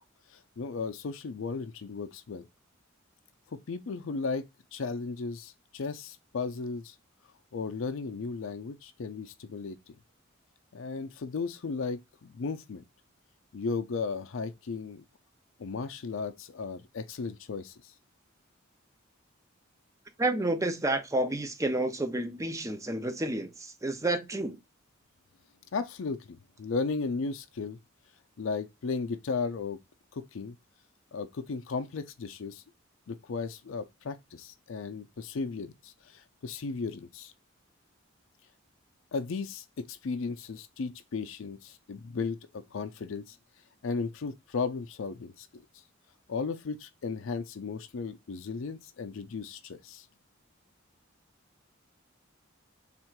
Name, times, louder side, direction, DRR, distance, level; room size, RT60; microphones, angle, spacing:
voice 1, 0.3-2.5 3.5-7.0 7.5-9.9 10.7-12.8 13.5-15.0 15.6-17.9 25.7-27.8 28.4-29.8 30.1-30.6 31.1-32.6 33.1-37.3 39.1-43.4 43.8-45.6 46.3-50.1, left 4 dB, 75° left, 0.5 m, -35 dB
voice 2, 20.2-24.6, right 2 dB, 15° right, 0.6 m, -30 dB
3.6 x 2.4 x 4.4 m
head